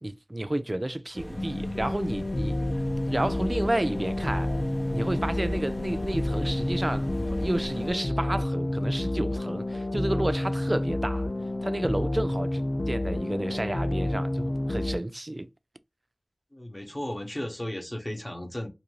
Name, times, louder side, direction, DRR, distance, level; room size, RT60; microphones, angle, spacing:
voice 1, 0.0-2.6 3.1-4.5 4.9-11.3 11.6-15.5, right 1 dB, 40° right, 0.3 m, -31 dB
sound 1, 1.1-7.9, equal, 50° left, 0.9 m, -38 dB
sound 2, 1.4-15.0, left 1 dB, 80° left, 0.4 m, -29 dB
voice 2, 16.5-18.7, left 1 dB, 25° left, 1.0 m, -35 dB
2.7 x 2.5 x 3.0 m
wide cardioid pair, 45°, 0 cm